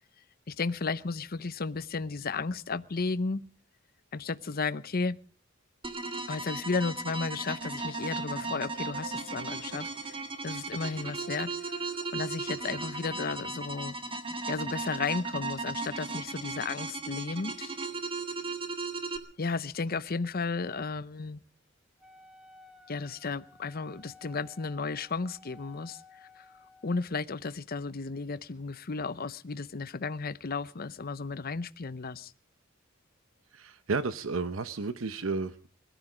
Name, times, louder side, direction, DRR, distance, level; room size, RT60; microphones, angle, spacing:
voice 1, 0.5-3.4 4.1-5.2 6.3-10.2 10.4-14.0 14.5-17.7 19.4-21.4 22.9-26.0 26.4-26.5 26.8-32.3, left 4 dB, 50° left, 0.8 m, -34 dB
sound 1, 5.8-19.2, right 3 dB, 25° right, 1.8 m, -36 dB
sound 2, 7.0-18.7, right 2 dB, 60° right, 3.7 m, -54 dB
Wind instrument woodwind instrument, 22.0-27.0, left 2 dB, 5° right, 1.7 m, -56 dB
voice 2, 33.5-35.7, right 4 dB, 85° right, 0.9 m, -32 dB
21.5 x 13.5 x 5.0 m
head